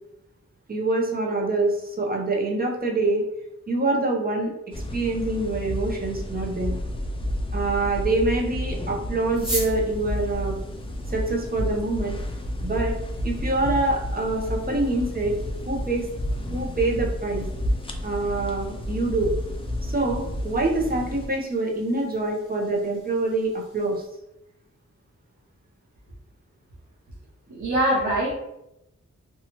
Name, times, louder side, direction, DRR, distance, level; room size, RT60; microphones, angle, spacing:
voice 1, 0.7-3.3 3.7-4.5 4.9-6.8 7.5-10.6 11.1-12.2 12.6-12.9 13.2-15.4 15.7-16.1 16.5-17.4 18.0-19.3 19.8-24.0, right 2 dB, 30° right, 0 dB, 0.6 m, -25 dB
sound 1, 4.7-21.3, equal, 20° left, 0.3 m, -31 dB
sound 2, 9.3-24.1, right 1 dB, ahead, 1.1 m, -42 dB
voice 2, 27.5-28.3, right 1 dB, 85° right, -5 dB, 0.8 m, -23 dB
2.9 x 2.3 x 2.8 m, 0.84 s
wide cardioid pair, 110°, 29 cm